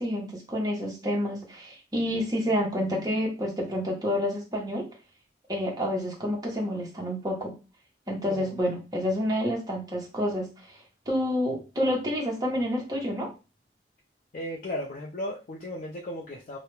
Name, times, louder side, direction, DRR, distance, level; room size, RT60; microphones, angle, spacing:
voice 1, 0.0-4.9 5.5-7.5 8.1-10.8 11.1-13.3, equal, 20° right, -1 dB, 0.7 m, -29 dB
voice 2, 14.3-16.6, left 1 dB, 45° left, -2 dB, 0.4 m, -35 dB
2.2 x 2.0 x 3.1 m, 0.30 s
head